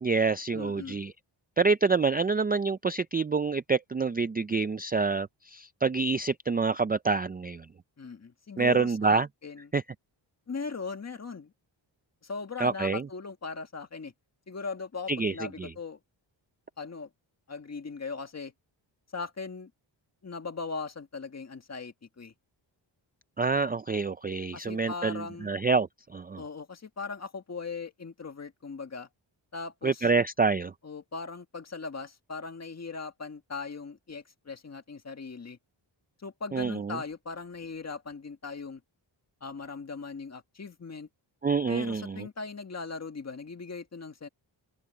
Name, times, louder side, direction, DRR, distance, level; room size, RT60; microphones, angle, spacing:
voice 1, 0.0-1.1 1.6-7.7 8.6-9.3 9.7-9.8 12.6-13.1 15.1-15.7 23.4-26.4 29.8-30.7 36.5-37.0 41.4-42.3, right 4 dB, 20° right, 0.3 m, -27 dB
voice 2, 0.5-1.0 8.0-9.7 10.5-11.5 12.2-14.1 14.5-16.0 16.8-17.1 17.5-18.5 19.1-19.7 20.2-22.3 24.5-25.5 26.4-29.1 29.5-30.1 30.8-35.6 36.2-38.8 39.4-41.1 41.7-44.3, left 4 dB, 35° left, 1.8 m, -39 dB
open air
wide cardioid pair, 175°, 46 cm